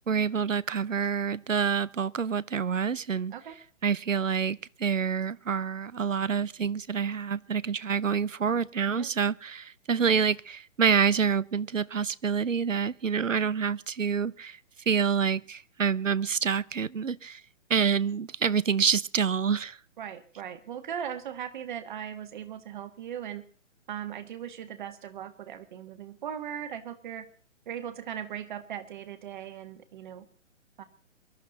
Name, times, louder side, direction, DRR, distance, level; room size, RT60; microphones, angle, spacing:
voice 1, 0.1-3.3 3.8-14.6 14.9-17.4 17.7-19.8, right 6 dB, 80° right, 21 dB, 0.8 m, -27 dB
voice 2, 20.0-23.4 23.9-27.3 27.7-30.3 30.8-30.9, right 9 dB, 40° right, 10 dB, 1.8 m, -38 dB
23.5 x 12.0 x 3.9 m, 0.42 s
figure-of-eight pair, 130°, 38 cm